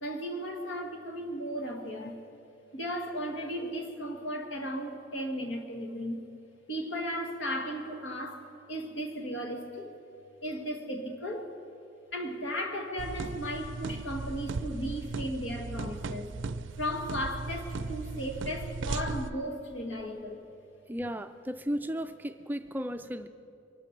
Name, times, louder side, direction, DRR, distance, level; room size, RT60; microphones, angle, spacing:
voice 1, 0.0-2.2 2.7-6.3 6.7-10.0 10.4-11.6 12.1-16.4 16.8-20.4, equal, 80° left, 3 dB, 1.8 m, -35 dB
sound 1, 13.0-19.3, right 3 dB, 85° right, 0.4 m, -37 dB
voice 2, 20.9-23.3, equal, 10° right, 8 dB, 0.3 m, -35 dB
23.0 x 12.5 x 4.5 m, 2.5 s
head